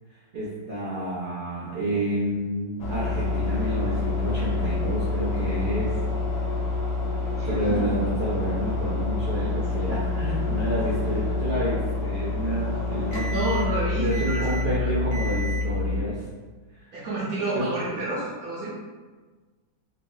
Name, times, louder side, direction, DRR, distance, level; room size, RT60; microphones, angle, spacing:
voice 1, 0.3-5.9 7.4-16.2 16.8-16.9 17.5-18.1, right 1 dB, 80° right, -9 dB, 0.4 m, -29 dB
sound 1, 2.8-16.0, left 3 dB, 70° left, 1.2 m, -27 dB
voice 2, 7.3-7.8 13.3-14.9 16.9-18.7, right 2 dB, 65° right, -9 dB, 1.2 m, -30 dB
3.4 x 2.0 x 3.7 m, 1.4 s
omnidirectional pair, 1.8 m